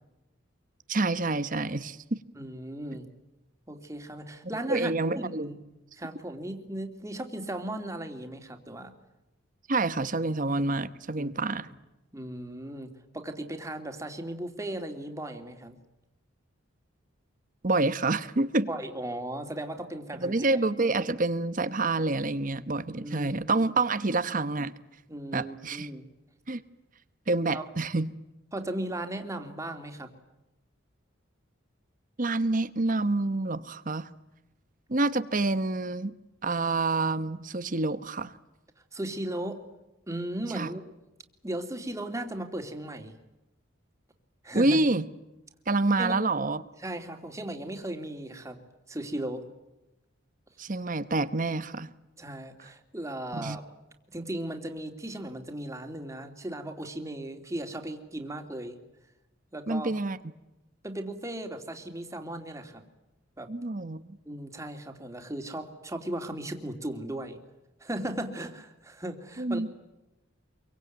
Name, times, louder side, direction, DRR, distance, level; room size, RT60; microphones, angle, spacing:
voice 1, 0.9-2.2 4.7-5.5 9.7-11.7 17.6-18.7 20.2-24.7 25.3-25.9 26.5-26.6 27.3-28.1 32.2-34.1 34.9-36.1 36.4-38.3 40.5-40.7 44.5-45.0 45.7-46.6 50.6-51.9 53.3-53.6 59.7-60.2 63.5-64.2 69.4-69.7, right 2 dB, 40° right, 13 dB, 1.0 m, -27 dB
voice 2, 2.3-3.1 3.7-5.6 5.9-8.9 11.1-11.3 12.1-15.8 18.7-20.6 23.0-23.6 25.1-26.1 27.5-27.7 28.5-30.1 38.9-39.6 40.1-40.8 41.4-43.2 44.4-44.8 46.0-46.2 46.8-48.6 48.9-49.4 52.2-53.6 54.1-58.8 59.5-59.9 60.8-62.9 63.4-63.5 64.3-67.4 67.8-69.7, right 1 dB, 15° right, 5 dB, 2.8 m, -36 dB
26.5 x 23.5 x 9.3 m, 0.96 s
head